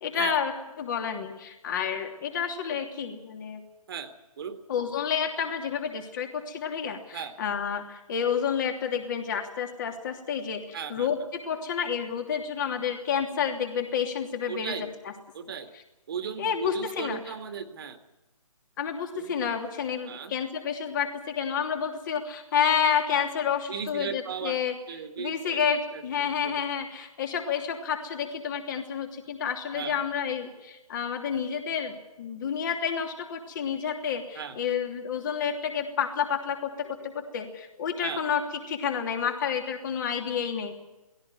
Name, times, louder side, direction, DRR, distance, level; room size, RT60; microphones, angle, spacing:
voice 1, 0.0-0.5 0.8-3.6 4.7-14.8 16.4-17.3 18.8-24.8 25.2-38.4 38.7-40.7, left 7 dB, 30° left, 4 dB, 3.1 m, -30 dB
voice 2, 3.9-4.6 7.1-7.4 10.7-11.1 14.5-14.9 15.3-15.7 16.1-18.0 19.1-19.3 20.1-20.3 23.7-24.6 24.9-25.6 25.9-26.6 29.7-30.0 34.3-34.6 38.0-38.2, right 7 dB, 40° right, 7 dB, 2.1 m, -36 dB
18.5 x 17.0 x 9.4 m, 1.0 s
figure-of-eight pair, 150°, 19 cm